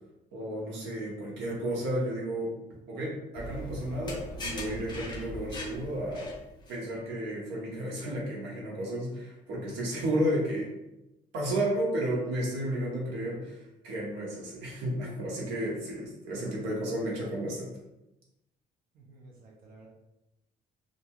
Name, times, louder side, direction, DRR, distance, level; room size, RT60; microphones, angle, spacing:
voice 1, 0.3-2.5 2.9-6.3 6.7-10.7 11.3-17.7, right 1 dB, 90° right, -3 dB, 1.0 m, -32 dB
sound 1, 3.3-6.8, equal, 25° left, 0.5 m, -40 dB
voice 2, 18.9-19.9, right 2 dB, 60° right, -3 dB, 0.6 m, -53 dB
2.8 x 2.5 x 2.4 m, 0.93 s
cardioid pair, 110°, 17 cm